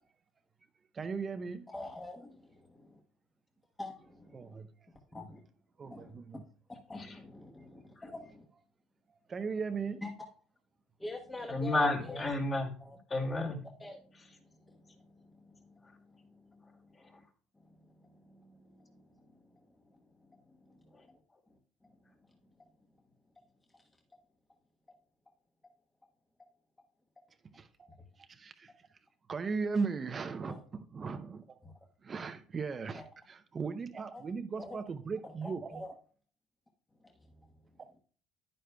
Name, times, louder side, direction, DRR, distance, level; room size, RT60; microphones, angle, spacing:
voice 1, 0.9-1.6 4.3-4.7 5.8-6.4 7.5-7.6 9.1-10.0 27.5-27.9 28.2-28.9 29.3-31.6 32.0-35.8 37.8-38.0, right 5 dB, 35° right, 0.6 m, -38 dB
voice 2, 1.7-2.4 3.8-4.5 5.1-5.4 5.8-6.1 6.9-8.5 10.0-10.1 11.0-12.2 12.9-13.0 13.8-17.2 17.6-21.2 21.8-22.0 22.3-22.4 30.5-30.6 31.6-31.7 32.9-33.0 34.1-34.2 34.6-34.8 35.2-35.9 37.0-37.1, left 2 dB, 15° left, 1.2 m, -47 dB
voice 3, 11.5-12.7 13.1-13.6 15.8-16.0 16.9-17.2 20.9-21.1 21.3-21.4, left 2 dB, 35° left, 2.3 m, -32 dB
10.0 x 9.3 x 2.3 m
supercardioid pair, 85°, 0 cm